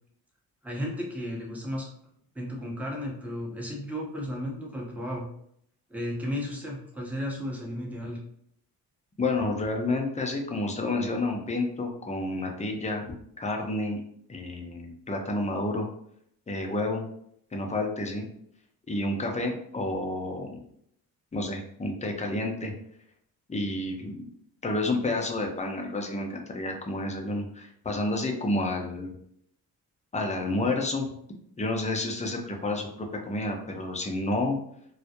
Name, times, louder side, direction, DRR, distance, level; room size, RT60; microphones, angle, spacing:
voice 1, 0.6-1.9 2.3-5.3 5.9-8.2, equal, 5° right, -3 dB, 0.9 m, -34 dB
voice 2, 9.2-13.0 13.4-14.0 14.3-15.9 16.5-17.0 17.5-18.3 18.9-20.6 21.3-22.7 23.5-24.3 24.6-29.1 30.1-31.1 31.6-34.6, left 2 dB, 15° left, 2 dB, 0.6 m, -30 dB
2.2 x 2.0 x 2.8 m, 0.69 s
supercardioid pair, 50°, 40 cm